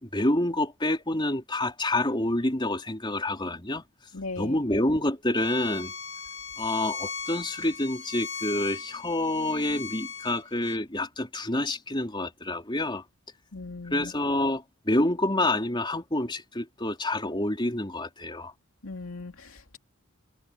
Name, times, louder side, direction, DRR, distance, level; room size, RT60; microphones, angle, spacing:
voice 1, 0.0-3.8 4.4-5.9 6.6-13.0 13.9-18.5, left 1 dB, 20° left, 3.8 m, -28 dB
voice 2, 4.1-4.6 13.5-14.1 18.8-19.8, left 3 dB, 70° left, 2.5 m, -38 dB
Bowed string instrument, 5.4-10.8, left 5 dB, 50° left, 2.0 m, -38 dB
head